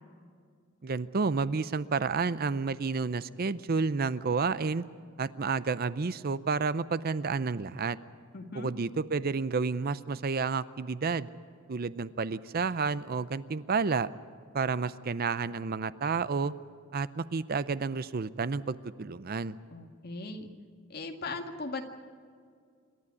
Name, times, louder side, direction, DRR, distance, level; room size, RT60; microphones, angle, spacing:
voice 1, 0.8-4.8 5.2-8.0 8.5-11.3 11.7-14.1 14.5-16.5 16.9-19.6, right 4 dB, 45° right, 16 dB, 0.5 m, -30 dB
voice 2, 8.3-8.7 19.7-20.5 20.9-21.8, left 3 dB, 50° left, 4 dB, 2.0 m, -38 dB
27.0 x 12.5 x 9.6 m, 2.1 s
head